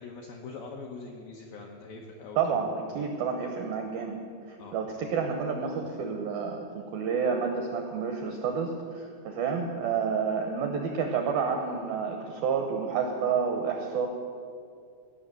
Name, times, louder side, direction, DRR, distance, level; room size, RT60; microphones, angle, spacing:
voice 1, 0.0-2.6 4.6-4.8, left 4 dB, 80° left, 0 dB, 2.1 m, -43 dB
voice 2, 2.4-4.2 4.5-14.1, right 6 dB, 80° right, 3 dB, 2.1 m, -29 dB
18.0 x 6.2 x 9.1 m, 2.3 s
omnidirectional pair, 5.6 m